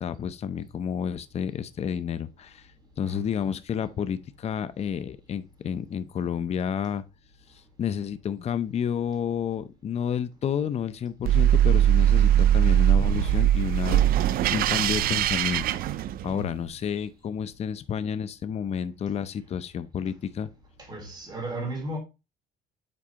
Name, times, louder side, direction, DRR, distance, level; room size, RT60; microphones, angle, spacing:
voice 1, 0.0-2.7 3.0-7.0 7.8-14.2 14.5-15.8 16.2-20.5, left 8 dB, 40° left, 0.6 m, -30 dB
sound 1, 11.2-16.5, right 11 dB, 60° right, 0.4 m, -21 dB
voice 2, 20.9-22.0, right 1 dB, 25° right, 3.4 m, -34 dB
7.6 x 4.6 x 2.8 m
cardioid pair, 110°, 17 cm